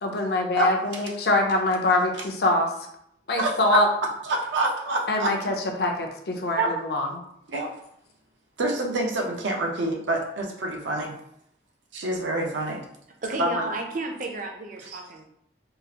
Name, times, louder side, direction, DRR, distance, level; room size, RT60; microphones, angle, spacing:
voice 1, 0.0-2.7 3.3-3.9 5.1-7.1, left 2 dB, 60° left, 3 dB, 0.5 m, -24 dB
voice 2, 0.6-1.0 3.4-3.6 4.2-5.3 6.5-6.7 7.5-7.8 8.6-11.1 11.9-12.9 13.4-13.7 14.8-15.0, right 2 dB, 85° right, 1 dB, 0.7 m, -27 dB
voice 3, 13.2-15.2, right 2 dB, 45° right, 2 dB, 0.5 m, -32 dB
3.7 x 2.4 x 2.8 m, 0.74 s
head